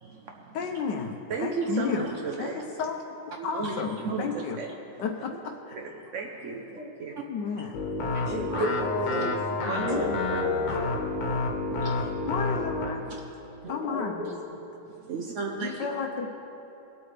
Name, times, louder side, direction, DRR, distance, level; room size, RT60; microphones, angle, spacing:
voice 1, 0.0-0.6 1.3-2.6 3.5-4.7 5.7-7.2 7.5-7.6 8.0-8.7 9.7-11.4 11.8-12.0 12.9-13.2 14.9-15.9, right 4 dB, 75° right, 1 dB, 0.7 m, -35 dB
voice 2, 0.5-2.1 2.4-3.0 3.4-3.9 4.2-4.6 5.0-5.8 7.2-7.8 12.2-13.1 13.7-14.2 15.6-16.3, left 6 dB, 65° left, 3 dB, 1.2 m, -32 dB
voice 3, 3.4-3.8 6.4-6.9 8.2-9.4 9.9-10.1 13.6-14.6, right 1 dB, 60° right, -4 dB, 2.5 m, -33 dB
sound 1, 7.7-13.0, left 3 dB, 90° left, 2.0 m, -29 dB
20.0 x 8.7 x 3.3 m, 2.9 s
omnidirectional pair, 2.3 m